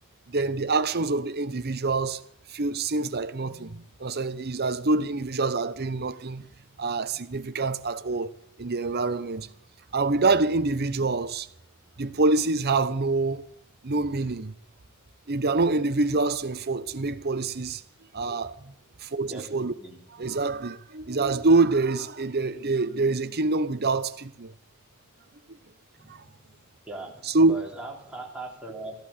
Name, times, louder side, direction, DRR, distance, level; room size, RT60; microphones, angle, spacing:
voice 1, 0.3-2.2 2.5-6.5 6.8-9.5 9.9-11.5 12.0-13.5 13.8-14.5 15.3-17.8 18.1-18.7 19.0-19.7 20.2-24.5 26.1-26.2 27.2-27.6, right 3 dB, 45° right, 0.8 m, -26 dB
voice 2, 19.3-20.0 26.0-26.6 26.9-29.1, right 1 dB, 5° right, 3.2 m, -40 dB
14.5 x 11.5 x 8.0 m
head